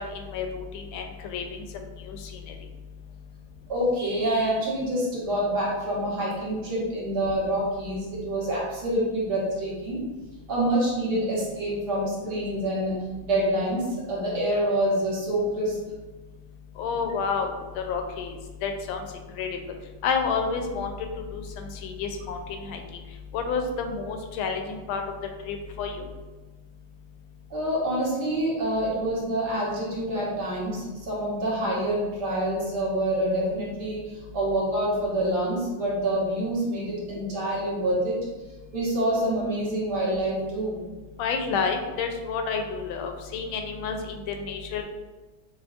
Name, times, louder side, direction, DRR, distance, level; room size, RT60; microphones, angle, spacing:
voice 1, 0.0-1.6 2.1-2.2 16.8-18.3 18.6-19.0 19.4-19.5 20.0-20.9 21.3-22.8 23.3-25.0 25.4-26.0 41.2-44.8, left 5 dB, 85° left, 4 dB, 1.4 m, -30 dB
voice 2, 3.7-10.0 10.5-12.9 13.2-15.8 27.5-34.0 34.3-38.2 38.7-40.8, right 1 dB, 60° right, -7 dB, 1.7 m, -26 dB
6.0 x 2.2 x 2.4 m, 1.2 s
omnidirectional pair, 2.2 m